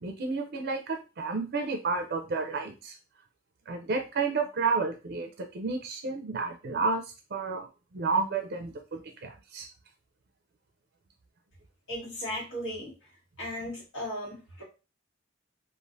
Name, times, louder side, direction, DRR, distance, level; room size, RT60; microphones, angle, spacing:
voice 1, 0.0-3.0 3.7-7.7 7.9-9.7, right 4 dB, 55° right, 4 dB, 0.5 m, -31 dB
voice 2, 11.9-12.9 13.4-14.6, left 1 dB, 85° left, -7 dB, 1.7 m, -36 dB
3.2 x 2.4 x 2.5 m, 0.31 s
head